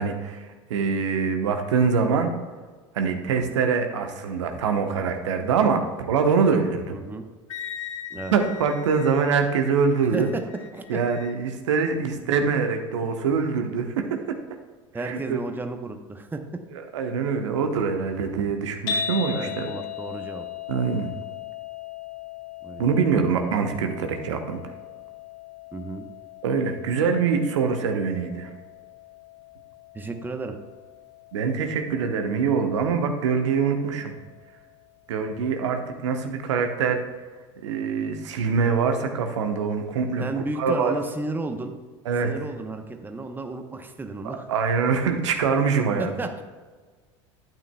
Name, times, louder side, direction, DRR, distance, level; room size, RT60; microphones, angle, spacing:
voice 1, 0.0-2.3 2.9-7.0 8.3-10.3 10.9-14.4 14.9-15.4 16.7-19.7 20.7-21.1 22.8-24.6 26.4-28.5 31.3-34.1 35.1-37.0 37.6-40.2 40.6-41.0 42.0-42.3 44.2-46.1, right 5 dB, 70° right, 5 dB, 1.0 m, -24 dB
voice 2, 6.9-7.3 8.1-8.3 10.1-11.0 14.9-16.4 19.3-20.4 22.6-22.9 25.7-26.1 29.9-30.6 40.2-41.7 42.2-44.5 46.0-46.4, right 2 dB, 10° right, 6 dB, 0.9 m, -33 dB
Wind instrument woodwind instrument, 7.5-11.3, left 9 dB, 80° left, 0.5 m, -40 dB
sound 1, 18.9-35.1, left 7 dB, 55° left, 1.4 m, -39 dB
12.0 x 8.8 x 2.3 m, 1.4 s
hypercardioid pair, 75°, 16 cm